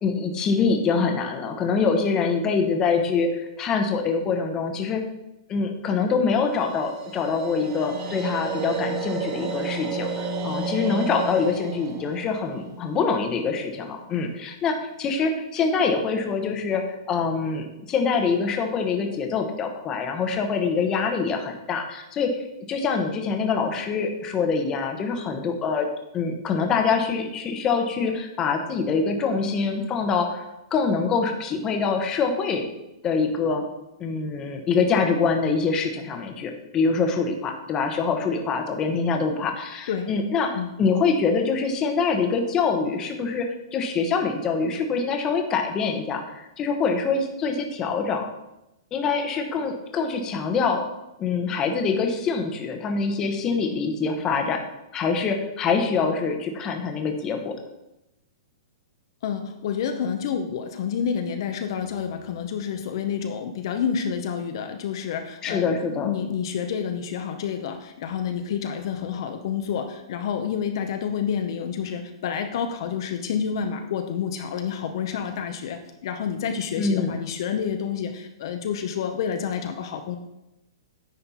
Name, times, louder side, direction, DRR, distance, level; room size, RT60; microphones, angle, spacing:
voice 1, 0.0-5.0 5.5-22.3 22.7-25.9 26.1-30.4 30.7-32.7 33.0-33.6 34.0-40.5 40.8-48.3 48.9-50.8 51.2-54.6 54.9-57.5 65.4-66.1 76.8-77.1, left 5 dB, 20° left, 4 dB, 0.9 m, -25 dB
sound 1, 6.5-13.6, right 4 dB, 30° right, 0.9 m, -32 dB
voice 2, 59.2-80.2, left 7 dB, 55° left, 6 dB, 0.7 m, -29 dB
9.8 x 4.3 x 4.2 m, 0.91 s
hypercardioid pair, 150°, 3 cm